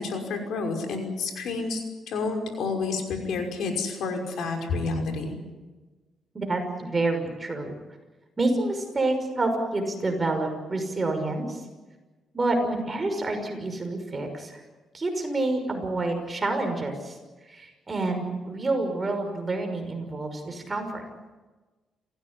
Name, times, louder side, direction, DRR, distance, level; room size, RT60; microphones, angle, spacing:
voice 1, 0.0-5.3, left 4 dB, 80° left, 4 dB, 5.7 m, -29 dB
voice 2, 6.3-7.7 8.4-11.6 12.3-14.6 14.9-17.2 17.5-21.1, right 2 dB, 25° right, 4 dB, 5.9 m, -28 dB
29.0 x 16.0 x 9.9 m, 1.2 s
cardioid pair, 120°, 0 cm